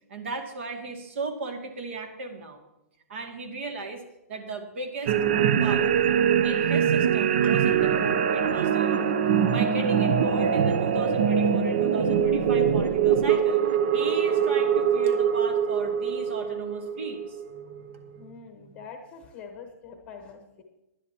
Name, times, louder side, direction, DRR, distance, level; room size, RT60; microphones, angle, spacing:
voice 1, 0.1-2.6 3.1-4.0 4.3-5.1 5.4-5.9 6.4-9.1 9.5-13.6 13.9-18.8, right 3 dB, 50° right, 5 dB, 2.3 m, -36 dB
sound 1, 5.1-17.8, right 8 dB, 35° right, 0.6 m, -23 dB
voice 2, 18.2-20.6, left 5 dB, 15° left, 4 dB, 1.1 m, -44 dB
19.5 x 11.0 x 2.9 m, 0.95 s
hypercardioid pair, 180°, 8 cm